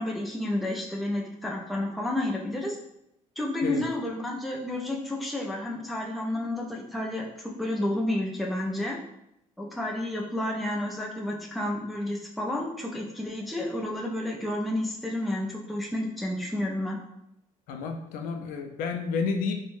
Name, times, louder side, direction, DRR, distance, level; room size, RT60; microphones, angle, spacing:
voice 1, 0.0-2.8 3.4-9.0 9.6-17.0, left 1 dB, ahead, -2 dB, 0.3 m, -31 dB
voice 2, 17.7-19.5, left 5 dB, 80° left, 5 dB, 0.4 m, -30 dB
2.6 x 2.1 x 3.1 m, 0.81 s
cardioid pair, 165°, 14 cm